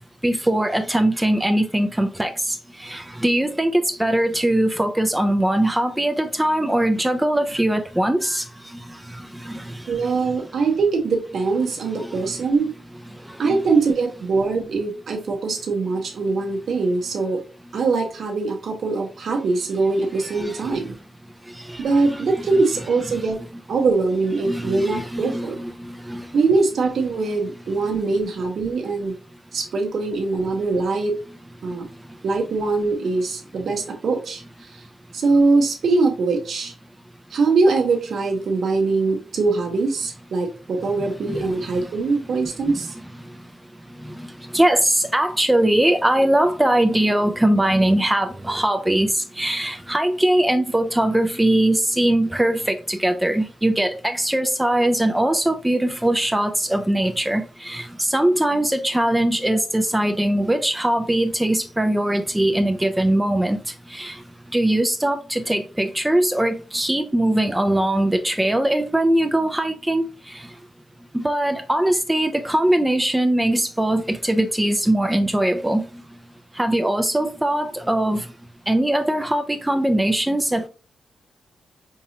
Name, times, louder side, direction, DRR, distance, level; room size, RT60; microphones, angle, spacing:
voice 1, 0.2-10.1 12.0-12.4 13.3-13.6 20.2-20.8 21.5-22.2 23.1-23.2 24.4-26.4 41.0-41.9 42.6-42.9 44.0-64.2 64.5-70.5 71.1-75.9 76.6-78.3 78.7-80.7, right 1 dB, 10° right, 0.5 m, -21 dB
voice 2, 9.9-12.7 13.4-17.4 17.7-20.9 21.8-23.4 23.7-25.6 26.3-29.2 29.5-31.2 31.6-31.9 32.2-34.8 35.1-36.7 37.3-42.9 52.5-52.6 59.5-59.6, right 3 dB, 65° right, 0.7 m, -22 dB
4.6 x 2.8 x 2.8 m
cardioid pair, 70°, 0 cm